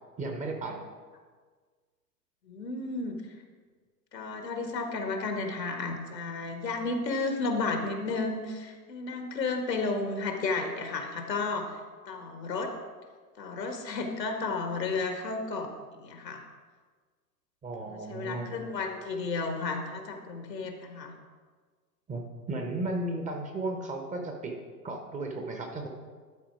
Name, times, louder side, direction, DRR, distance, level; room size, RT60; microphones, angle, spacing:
voice 1, 0.2-0.8 17.6-18.5 22.1-24.6 24.8-25.9, right 2 dB, 15° right, 3 dB, 0.9 m, -34 dB
voice 2, 2.5-3.2 4.1-11.6 12.1-12.7 13.4-16.4 17.9-21.1, left 3 dB, 80° left, 4 dB, 1.6 m, -32 dB
12.0 x 4.3 x 4.6 m, 1.5 s
figure-of-eight pair, 105°, 49 cm